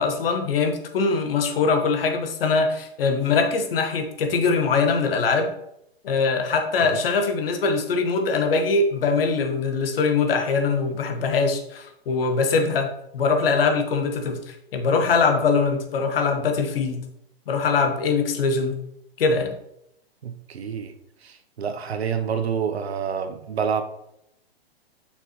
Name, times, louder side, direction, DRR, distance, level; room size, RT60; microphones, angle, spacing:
voice 1, 0.0-5.5 6.0-17.1 17.5-18.8 19.2-19.6, left 4 dB, 65° left, 1.3 m, -22 dB
voice 2, 20.2-20.9 21.2-23.8, right 7 dB, 80° right, 0.9 m, -28 dB
6.4 x 5.9 x 3.1 m
hypercardioid pair, 130°, 31 cm